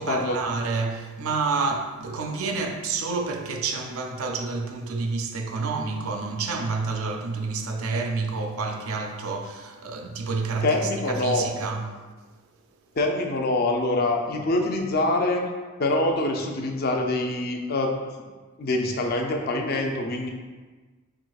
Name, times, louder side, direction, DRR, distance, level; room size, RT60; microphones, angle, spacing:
voice 1, 0.0-12.0, right 4 dB, 80° right, 0.5 m, -29 dB
voice 2, 10.6-11.5 13.0-15.5 15.8-17.9 18.6-20.3, left 2 dB, 45° left, 0.5 m, -25 dB
4.9 x 3.7 x 2.3 m
head